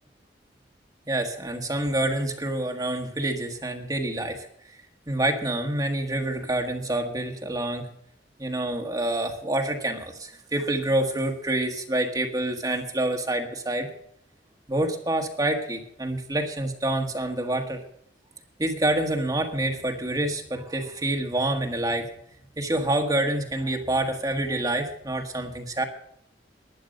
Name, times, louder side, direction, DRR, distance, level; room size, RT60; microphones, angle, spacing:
voice 1, 1.1-4.5 5.1-7.9 8.4-13.9 14.7-17.8 18.6-22.1 22.6-25.8, right 1 dB, 20° right, 3 dB, 1.3 m, -27 dB
11.5 x 9.8 x 6.4 m, 0.70 s
head